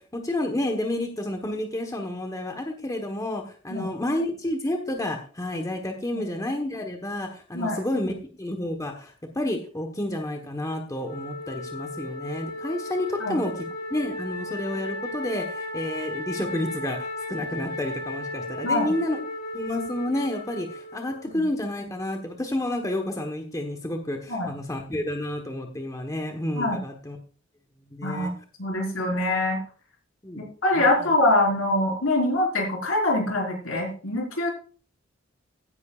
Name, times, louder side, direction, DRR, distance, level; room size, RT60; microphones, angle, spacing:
voice 1, 0.0-19.2 19.5-27.2 27.9-28.3 30.2-30.4 30.8-31.1, left 1 dB, 15° left, 4 dB, 1.2 m, -30 dB
Wind instrument woodwind instrument, 11.0-21.4, left 2 dB, 45° left, 2.7 m, -35 dB
voice 2, 28.0-28.3 28.6-29.6 30.4-34.5, left 1 dB, 80° left, 0 dB, 4.5 m, -24 dB
15.5 x 10.5 x 2.4 m, 0.39 s
head